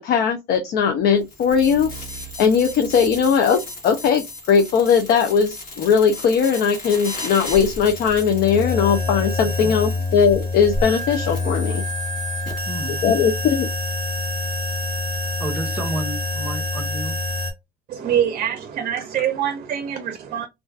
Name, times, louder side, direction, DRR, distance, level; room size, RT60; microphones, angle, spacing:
voice 1, 0.0-11.8 13.0-13.7, left 6 dB, 70° left, 0.6 m, -19 dB
sound 1, 1.2-17.5, left 2 dB, 55° left, 1.4 m, -28 dB
voice 2, 12.6-13.0 15.4-17.2, right 1 dB, 10° right, 0.8 m, -31 dB
voice 3, 17.9-20.5, right 9 dB, 50° right, 0.5 m, -24 dB
2.4 x 2.3 x 2.4 m
cardioid pair, 110°, 17 cm